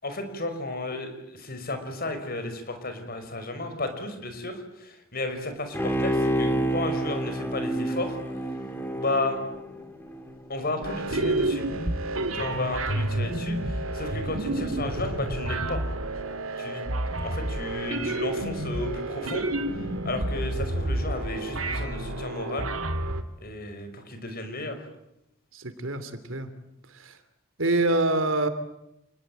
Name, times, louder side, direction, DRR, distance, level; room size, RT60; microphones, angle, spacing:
voice 1, 0.0-8.2 8.9-9.4 10.5-11.6 12.3-15.8 16.6-16.8 17.2-19.5 20.1-22.7 23.4-24.8, left 2 dB, 45° left, 8 dB, 5.4 m, -33 dB
Bowed string instrument, 5.7-10.3 10.7-10.8, right 1 dB, 10° left, 3.0 m, -28 dB
sound 1, 10.8-23.2, right 1 dB, 85° right, 2.4 m, -29 dB
voice 2, 25.5-26.5 26.9-27.2 27.6-28.5, right 2 dB, 70° right, 11 dB, 3.0 m, -26 dB
29.0 x 20.0 x 9.1 m, 0.86 s
head